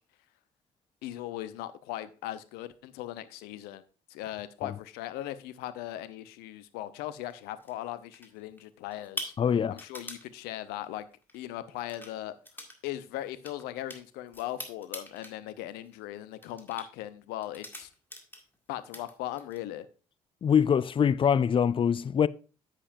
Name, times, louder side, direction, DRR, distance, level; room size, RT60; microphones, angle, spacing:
voice 1, 1.0-3.8 4.1-9.3 9.7-11.1 11.3-12.4 12.8-17.9 18.7-19.8, left 13 dB, 70° left, 0.6 m, -38 dB
sound 1, 7.3-7.7 8.1-8.6 8.9-10.2 11.2-11.4 11.8-12.1 12.4-12.8 13.0-15.3 15.7-16.0 16.4-16.9 17.4-18.6 18.8-19.6, left 1 dB, 10° left, 2.0 m, -43 dB
voice 2, 9.4-9.8 20.4-22.3, left 7 dB, 30° left, 0.4 m, -24 dB
9.8 x 7.5 x 2.5 m
figure-of-eight pair, 45°, 17 cm